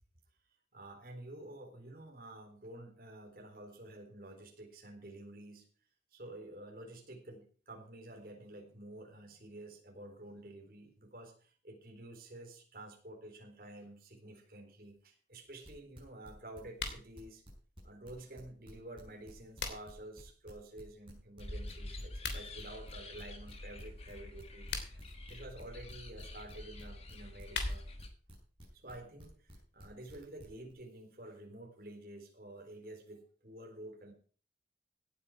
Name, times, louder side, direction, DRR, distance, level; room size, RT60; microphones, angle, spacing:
voice 1, 0.7-5.7 6.1-17.4 17.8-27.9 28.7-34.1, right 1 dB, 55° right, 2 dB, 4.0 m, -50 dB
sound 1, 15.5-17.8 18.0-30.7, equal, 30° right, 6.0 m, -53 dB
sound 2, 16.7-17.1 19.1-20.1 22.1-22.4 24.5-25.1 27.1-28.1, left 4 dB, 85° left, 3.0 m, -40 dB
sound 3, 21.4-28.1, left 1 dB, 35° left, 1.8 m, -47 dB
17.0 x 9.1 x 4.9 m, 0.41 s
head